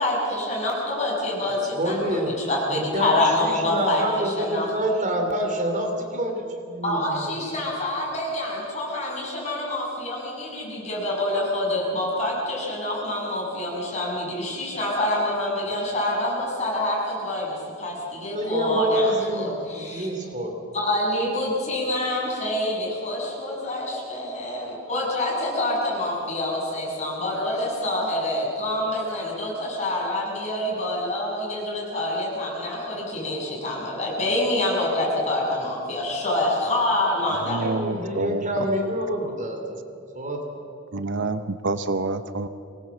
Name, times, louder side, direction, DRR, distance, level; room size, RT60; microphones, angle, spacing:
voice 1, 0.0-4.7 6.8-20.1 20.7-37.7, left 1 dB, 35° left, -4 dB, 7.3 m, -26 dB
voice 2, 1.8-2.3 2.7-7.2 18.3-20.7 37.3-37.4 37.6-39.8 40.1-40.6, right 1 dB, 40° right, 3 dB, 3.0 m, -27 dB
voice 3, 37.5-38.4 40.9-42.5, right 3 dB, 60° right, 11 dB, 0.8 m, -27 dB
24.0 x 19.0 x 7.5 m, 2.6 s
head